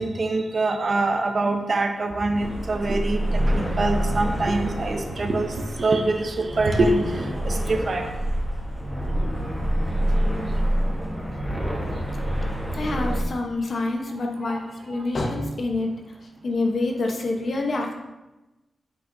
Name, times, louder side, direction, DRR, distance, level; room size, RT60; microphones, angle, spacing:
voice 1, 0.0-8.1 14.5-14.6 14.9-15.0, right 2 dB, 45° right, 5 dB, 0.7 m, -24 dB
sound 1, 2.4-13.2, equal, ahead, 1.2 m, -27 dB
voice 2, 12.7-15.9 16.4-17.9, left 2 dB, 55° left, 2 dB, 1.0 m, -26 dB
8.1 x 6.0 x 2.7 m, 1.0 s
wide cardioid pair, 110°, 0 cm